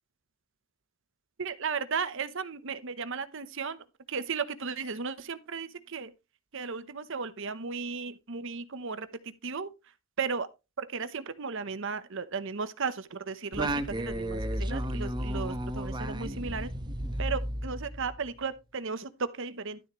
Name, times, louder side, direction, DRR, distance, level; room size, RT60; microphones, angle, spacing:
voice 1, 1.4-6.1 6.5-9.7 10.2-10.5 10.8-16.7 17.2-19.8, right 5 dB, 60° right, 0.9 m, -35 dB
Singing, 13.5-18.3, equal, 20° right, 1.0 m, -33 dB
12.5 x 7.2 x 3.1 m
head